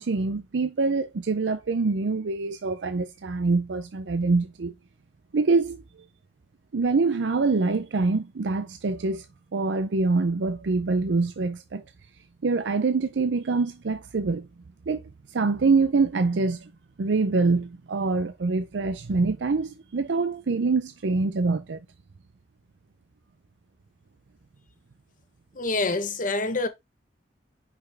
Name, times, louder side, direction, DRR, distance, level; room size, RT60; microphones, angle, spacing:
voice 1, 0.0-4.7 5.3-5.8 6.7-9.3 9.5-11.8 12.4-14.5 14.9-15.0 15.3-16.7 17.0-21.8, right 3 dB, 85° right, 0.5 m, -25 dB
voice 2, 25.5-26.7, left 3 dB, 50° left, 1.1 m, -26 dB
5.9 x 5.7 x 3.5 m
head